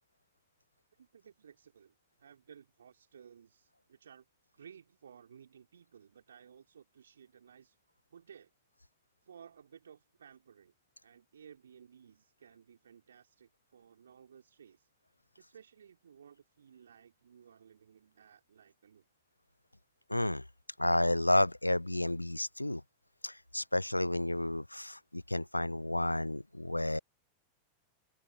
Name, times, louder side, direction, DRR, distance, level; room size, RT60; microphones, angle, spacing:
voice 1, 1.0-4.3 4.5-7.8 8.1-8.5 9.2-10.7 11.0-14.9 15.4-19.1, right 7 dB, 70° right, 3.6 m, -57 dB
voice 2, 20.1-20.4 20.8-22.8 23.2-27.0, left 1 dB, 85° left, 0.3 m, -31 dB
figure-of-eight pair, 90°, 0 cm